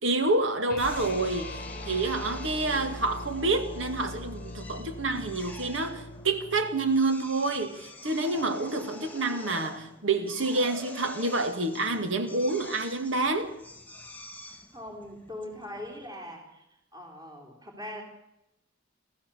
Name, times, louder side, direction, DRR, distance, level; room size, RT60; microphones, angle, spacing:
voice 1, 0.0-13.5, right 2 dB, 70° right, 2.3 m, -28 dB
sound 1, 0.7-7.0, left 1 dB, 50° left, 1.0 m, -41 dB
Drill, 0.8-16.1, left 2 dB, 10° left, 2.0 m, -47 dB
voice 2, 14.7-16.6 16.9-18.0, left 1 dB, 20° right, 3.8 m, -41 dB
27.5 x 14.5 x 7.0 m
head